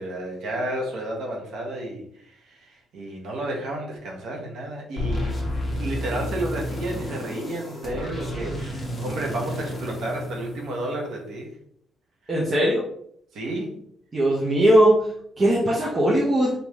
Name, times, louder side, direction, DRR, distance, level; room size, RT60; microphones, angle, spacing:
voice 1, 0.0-5.5 5.8-11.6 13.3-13.8, right 1 dB, 70° right, 0 dB, 1.4 m, -32 dB
sound 1, 5.0-11.1, left 1 dB, 10° left, 1.5 m, -31 dB
voice 2, 12.3-12.8 14.1-15.1 15.4-16.5, right 1 dB, 25° right, -5 dB, 1.0 m, -19 dB
5.4 x 3.1 x 3.1 m, 0.67 s
cardioid pair, 135°, 0 cm